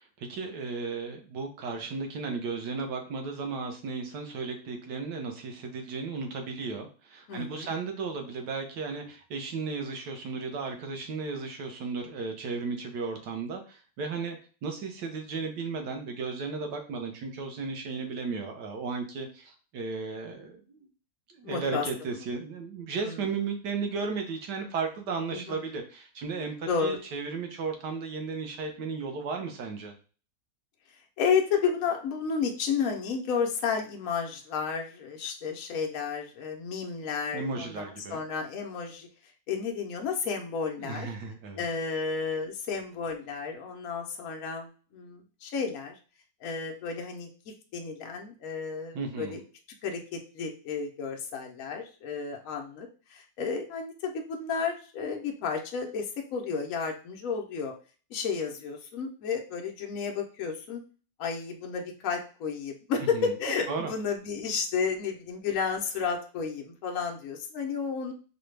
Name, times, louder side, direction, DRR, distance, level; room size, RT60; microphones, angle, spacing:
voice 1, 0.0-20.9 21.3-29.9 37.3-38.2 40.8-41.6 48.9-49.4 63.1-63.3 63.7-63.9, right 4 dB, 85° right, 4 dB, 1.5 m, -35 dB
voice 2, 7.3-7.7 21.4-21.8 23.0-23.2 25.3-25.6 26.7-27.0 31.2-39.1 39.5-41.1 41.6-45.9 46.4-47.3 47.7-49.4 49.8-57.7 58.1-60.8 61.2-68.1, left 6 dB, 65° left, 2 dB, 1.0 m, -32 dB
4.9 x 2.3 x 3.2 m, 0.37 s
omnidirectional pair, 1.7 m